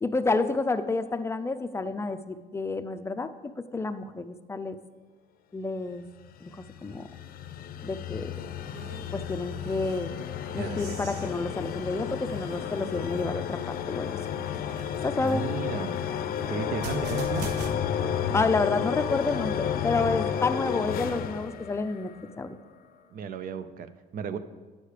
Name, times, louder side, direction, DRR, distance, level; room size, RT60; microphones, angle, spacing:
voice 1, 0.0-3.3 3.7-4.8 5.5-6.0 6.4-7.1 7.8-8.3 9.1-10.1 10.5-13.6 13.9-14.1 15.0-15.4 18.3-22.6, left 3 dB, 15° left, 9 dB, 0.5 m, -29 dB
sound 1, 6.2-22.4, left 8 dB, 60° left, 0.6 m, -32 dB
sound 2, 8.3-17.7, right 3 dB, 80° right, 1.1 m, -45 dB
voice 2, 15.2-16.0 16.5-17.5 23.1-24.4, right 7 dB, 55° right, 12 dB, 0.6 m, -34 dB
9.7 x 6.5 x 5.0 m, 1.3 s
cardioid pair, 110°, 17 cm